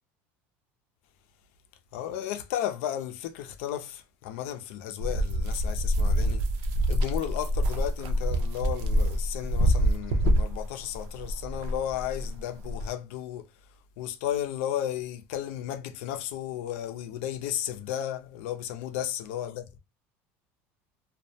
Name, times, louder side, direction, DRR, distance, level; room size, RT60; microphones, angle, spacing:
voice 1, 1.9-6.5 6.9-13.5 14.0-19.8, left 11 dB, 80° left, 0.5 m, -34 dB
sound 1, 5.0-12.9, equal, 65° right, 0.5 m, -26 dB
2.2 x 2.1 x 2.7 m
cardioid pair, 160°, 7 cm